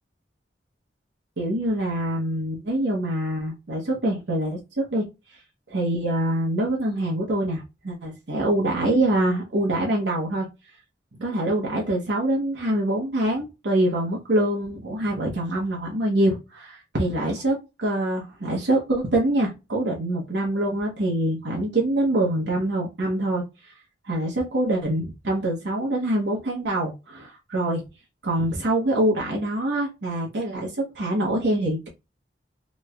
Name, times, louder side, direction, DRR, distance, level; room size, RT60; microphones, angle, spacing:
voice 1, 1.4-5.0 5.7-10.5 11.2-23.7 24.1-27.8 28.2-31.9, right 1 dB, 70° right, 0.9 m, -25 dB
3.1 x 3.0 x 2.3 m
head